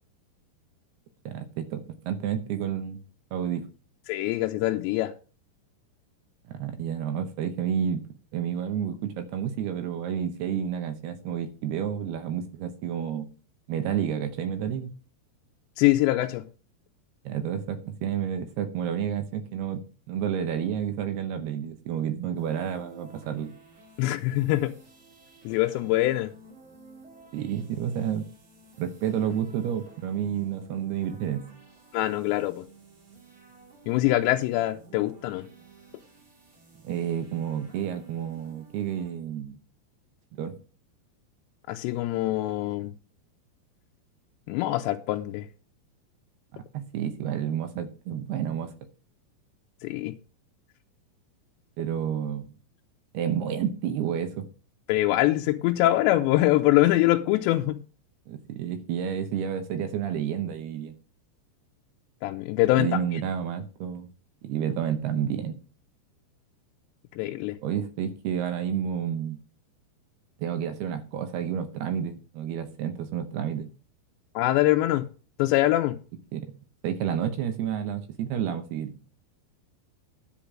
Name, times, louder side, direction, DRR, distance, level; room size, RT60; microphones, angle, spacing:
voice 1, 1.3-3.0 3.3-3.7 6.5-8.0 8.3-13.3 13.7-14.9 17.3-19.8 20.1-23.5 27.3-28.3 28.8-31.5 36.8-39.6 40.3-40.5 46.7-48.7 51.8-52.5 53.1-54.5 58.3-60.9 62.8-64.1 64.4-65.6 67.6-69.4 70.4-73.7 76.3-76.5 76.8-79.0, right 9 dB, 75° right, 2.8 m, -30 dB
voice 2, 4.1-5.1 15.8-16.5 24.0-24.7 25.4-26.3 31.9-32.7 33.9-35.5 41.7-42.9 44.5-45.5 49.8-50.2 54.9-57.8 62.2-63.2 67.2-67.6 74.4-75.1 75.4-76.0, left 16 dB, 85° left, 2.8 m, -24 dB
sound 1, 22.3-39.1, right 4 dB, 40° right, 3.4 m, -53 dB
10.0 x 5.2 x 7.3 m
omnidirectional pair, 5.0 m